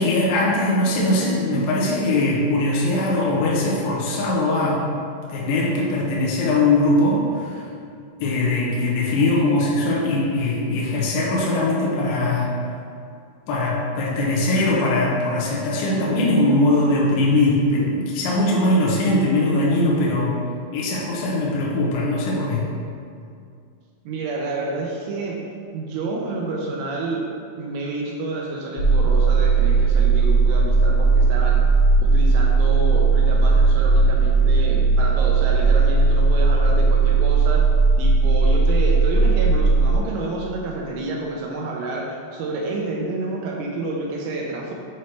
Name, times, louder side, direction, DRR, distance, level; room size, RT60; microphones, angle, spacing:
voice 1, 0.0-4.9 5.3-7.6 8.2-12.5 13.5-20.4 20.7-22.7, left 2 dB, 85° left, -5 dB, 2.0 m, -21 dB
voice 2, 24.0-25.5 25.7-31.7 32.0-37.6 38.0-44.7, right 2 dB, 85° right, -2 dB, 3.0 m, -29 dB
sound 1, 28.8-40.0, right 4 dB, 65° left, 2.9 m, -17 dB
8.1 x 3.1 x 4.4 m, 2.3 s
omnidirectional pair, 5.8 m